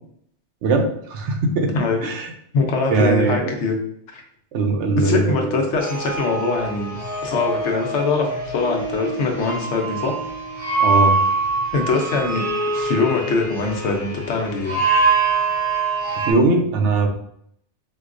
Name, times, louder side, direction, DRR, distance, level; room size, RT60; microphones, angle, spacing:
voice 1, 0.6-1.7 2.0-2.3 2.9-3.5 4.5-5.6 10.8-11.2 16.2-17.1, right 3 dB, 75° right, 4 dB, 0.9 m, -20 dB
voice 2, 2.5-3.7 4.1-4.2 5.0-7.0 7.2-10.2 11.7-14.8, left 4 dB, 75° left, 2 dB, 1.0 m, -22 dB
sound 1, 5.8-16.3, right 4 dB, 50° left, 1.1 m, -24 dB
4.4 x 2.2 x 2.4 m, 0.69 s
omnidirectional pair, 1.2 m